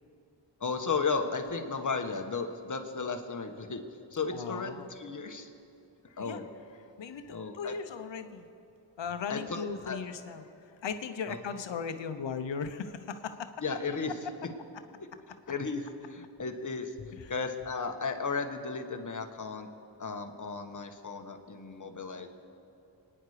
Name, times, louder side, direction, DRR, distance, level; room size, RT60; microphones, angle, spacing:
voice 1, 0.6-3.8 4.1-5.5 6.2-6.5 7.3-7.7 9.3-10.0 11.3-11.4 13.6-14.1 14.4-14.5 15.5-15.8 16.1-16.9 17.3-19.7 20.0-22.3, left 4 dB, 45° left, 5 dB, 1.4 m, -34 dB
voice 2, 4.3-4.9 6.1-6.5 7.0-8.5 9.0-13.5 17.1-17.3, left 6 dB, 90° left, 8 dB, 1.0 m, -38 dB
27.5 x 10.0 x 5.0 m, 2.7 s
wide cardioid pair, 105°, 43 cm